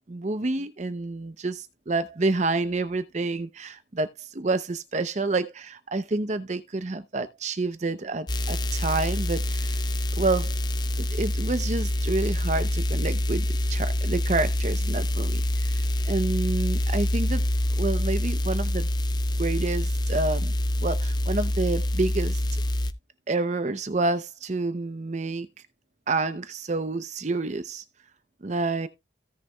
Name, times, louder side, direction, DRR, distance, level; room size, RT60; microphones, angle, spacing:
voice 1, 0.1-1.6 1.9-9.8 10.2-10.5 11.0-17.5 17.8-18.9 19.4-20.5 20.8-22.4 23.3-25.5 26.1-27.8 28.4-28.9, right 3 dB, 40° right, 0.6 m, -28 dB
sound 1, 8.3-22.9, left 1 dB, 25° left, 0.7 m, -26 dB
17.0 x 6.6 x 2.3 m
head